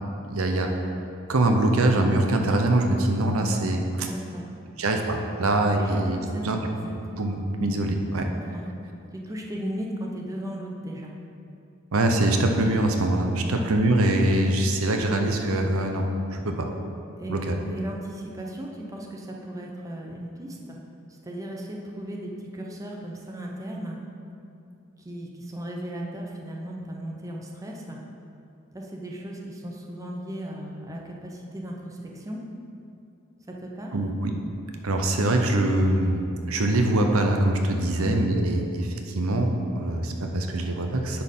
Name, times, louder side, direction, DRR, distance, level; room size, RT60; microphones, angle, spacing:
voice 1, 0.3-0.9 1.3-4.1 4.8-6.2 6.4-6.6 7.2-8.3 11.9-16.7 17.3-17.5 33.9-34.3 34.8-41.2, right 1 dB, 85° right, 3 dB, 0.8 m, -23 dB
voice 2, 4.0-4.5 5.4-5.5 5.8-7.0 7.6-7.8 8.3-8.7 9.1-11.1 13.4-13.6 17.2-20.8 21.2-24.0 25.0-28.0 28.7-32.4 33.5-34.1 37.9-38.1, right 1 dB, 15° right, -1 dB, 0.8 m, -36 dB
9.9 x 4.5 x 5.4 m, 2.6 s
head